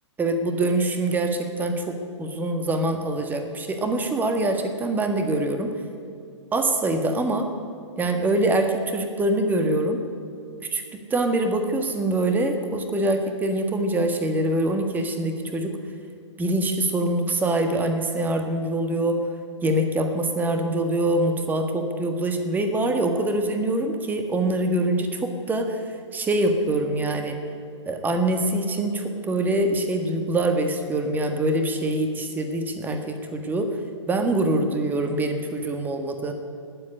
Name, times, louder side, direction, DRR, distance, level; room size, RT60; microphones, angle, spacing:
voice 1, 0.2-5.7 6.5-7.5 8.0-10.0 10.7-15.8 16.4-19.2 19.6-25.8 26.1-27.4 27.9-33.8 34.1-36.3, right 1 dB, 10° right, 6 dB, 1.5 m, -24 dB
19.5 x 7.7 x 9.7 m, 2.4 s
figure-of-eight pair, 115°, 16 cm